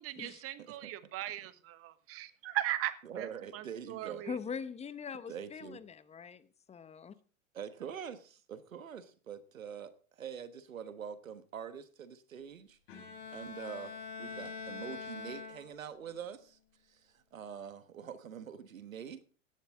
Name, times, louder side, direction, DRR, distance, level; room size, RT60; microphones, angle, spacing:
voice 1, 0.0-4.4, right 14 dB, 35° right, 1.4 m, -38 dB
voice 2, 0.6-0.9 3.0-4.3 5.3-5.8 7.5-12.8 13.3-16.6 16.9-19.2, right 7 dB, 85° right, 1.4 m, -45 dB
voice 3, 4.2-7.1, left 6 dB, 15° left, 0.9 m, -42 dB
Bowed string instrument, 12.9-16.1, left 5 dB, 55° left, 5.6 m, -44 dB
16.5 x 11.5 x 3.6 m
hypercardioid pair, 100°, 39 cm